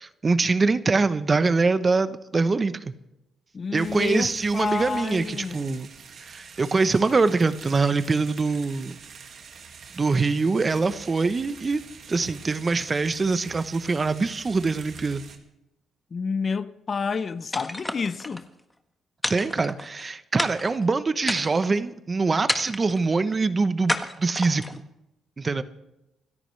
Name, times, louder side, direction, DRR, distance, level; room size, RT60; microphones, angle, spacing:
voice 1, 0.2-2.9 3.7-5.9 6.2-9.0 9.9-11.8 12.1-15.2 19.3-24.8 25.4-25.6, right 4 dB, 30° right, 0.9 m, -24 dB
voice 2, 3.5-5.8 16.1-18.5, left 5 dB, 40° left, 0.6 m, -29 dB
sound 1, 3.7-15.4, right 6 dB, 60° right, 2.1 m, -46 dB
sound 2, 17.5-18.4 19.2-20.0 20.4-20.8 21.2-21.8 22.5-23.0 23.9-24.8, left 1 dB, 10° left, 1.4 m, -30 dB
27.0 x 13.5 x 3.3 m
cardioid pair, 90°, 0 cm